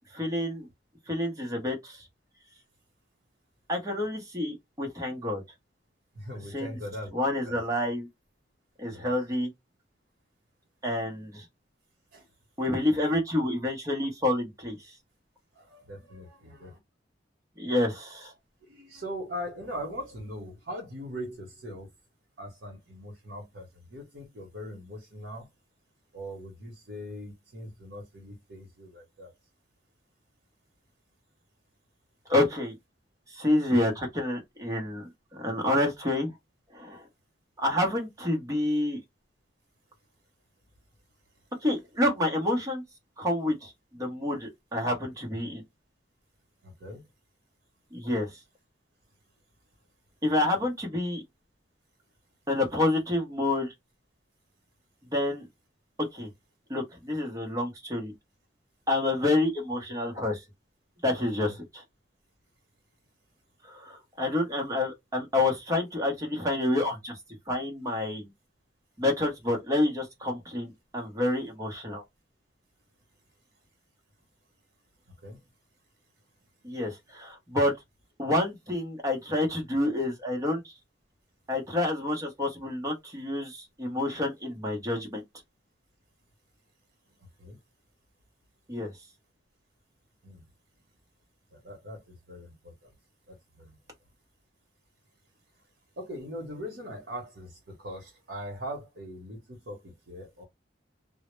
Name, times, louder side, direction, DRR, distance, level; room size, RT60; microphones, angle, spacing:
voice 1, 0.1-0.7 1.1-2.1 3.7-5.4 6.5-6.8 7.1-8.1 8.8-9.5 10.8-11.4 12.6-14.9 17.6-18.3 32.3-32.8 33.3-35.1 35.4-36.3 36.7-37.0 37.6-39.0 41.6-42.8 43.2-45.6 47.9-48.4 50.2-51.2 52.5-53.7 55.1-55.5 56.1-56.3 56.7-58.1 58.9-60.4 61.0-61.8 63.6-67.2 67.5-68.3 69.0-72.0 76.6-77.7 78.2-80.7 81.5-85.2 88.7-88.9, left 1 dB, 20° right, 0.7 m, -28 dB
voice 2, 6.1-7.6 8.9-9.1 12.1-12.3 15.5-16.8 18.6-21.9 22.4-25.5 26.1-29.3 46.6-47.0 61.4-61.6 75.1-75.4 87.4-87.6 90.2-90.4 91.5-92.9 93.3-93.8 96.0-100.4, equal, 70° right, 0.8 m, -41 dB
2.0 x 2.0 x 3.0 m
head